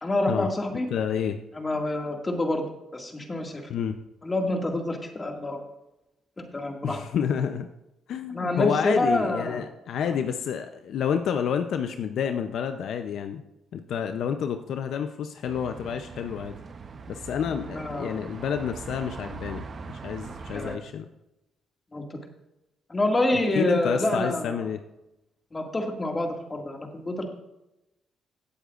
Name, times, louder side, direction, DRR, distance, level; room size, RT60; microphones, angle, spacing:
voice 1, 0.0-0.9 1.5-2.6 2.9-3.7 4.2-5.6 6.4-7.0 8.3-9.6 10.0-10.2 17.5-18.2 20.5-20.8 21.9-22.2 22.9-24.6 25.5-27.2, left 1 dB, 25° left, 2 dB, 2.1 m, -27 dB
voice 2, 0.9-1.4 3.7-4.0 6.8-7.7 8.1-13.4 13.7-16.5 17.1-21.1 23.3-24.8, left 8 dB, 70° left, 7 dB, 0.6 m, -29 dB
sound 1, 15.5-20.8, right 4 dB, 45° right, 0.9 m, -41 dB
17.0 x 8.2 x 2.5 m, 0.91 s
cardioid pair, 90°, 0 cm